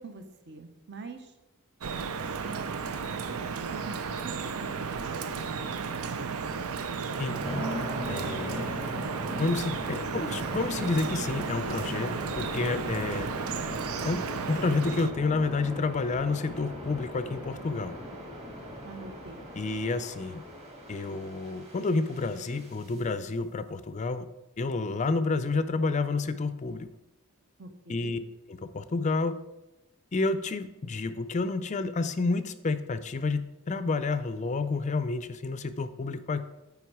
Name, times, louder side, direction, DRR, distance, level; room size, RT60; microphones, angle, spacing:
voice 1, 0.0-1.3 3.0-4.7 5.0-6.4 18.8-19.5 27.6-28.2, right 3 dB, 50° right, 7 dB, 0.9 m, -45 dB
Drip, 1.8-15.1, right 5 dB, 80° right, 0.5 m, -34 dB
sound 1, 7.0-23.0, equal, 30° right, 2.3 m, -39 dB
voice 2, 7.2-7.7 8.1-8.8 9.4-13.3 14.0-17.9 19.6-20.4 20.9-24.3 24.6-26.9 27.9-28.2 28.7-29.4 30.1-36.5, left 3 dB, 35° left, 12 dB, 0.4 m, -30 dB
9.1 x 5.3 x 4.7 m, 0.95 s
head